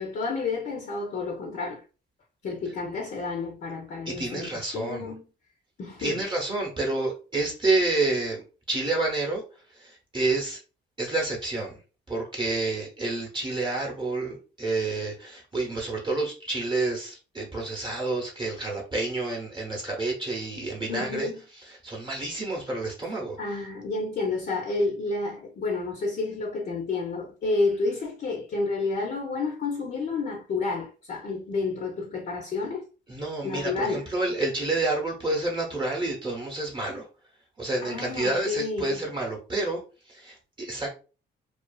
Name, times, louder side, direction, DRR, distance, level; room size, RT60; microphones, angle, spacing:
voice 1, 0.0-1.8 2.4-4.5 4.7-5.3 5.8-6.2 20.9-21.4 23.4-32.9 33.4-34.1 37.8-39.1, left 3 dB, 50° left, 0.6 m, -30 dB
voice 2, 4.1-5.1 6.0-9.4 9.7-10.6 11.0-11.8 12.1-23.4 33.1-37.1 37.6-39.8 40.1-40.9, right 2 dB, 25° right, 0.8 m, -29 dB
2.4 x 2.3 x 2.3 m
cardioid pair, 90°, 20 cm